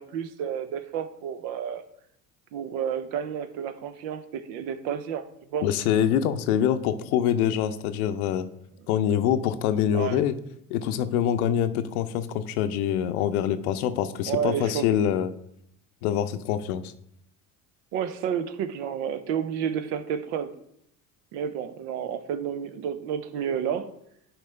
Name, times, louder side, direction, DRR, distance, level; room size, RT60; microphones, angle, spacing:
voice 1, 0.0-1.8 2.5-5.7 9.9-10.2 14.3-14.9 17.9-20.5 21.3-23.9, right 8 dB, 65° right, 12 dB, 0.8 m, -30 dB
voice 2, 5.6-8.5 8.9-10.3 10.7-15.3 16.0-16.9, left 9 dB, 75° left, 11 dB, 0.7 m, -25 dB
11.0 x 4.7 x 3.3 m, 0.74 s
hypercardioid pair, 70°, 44 cm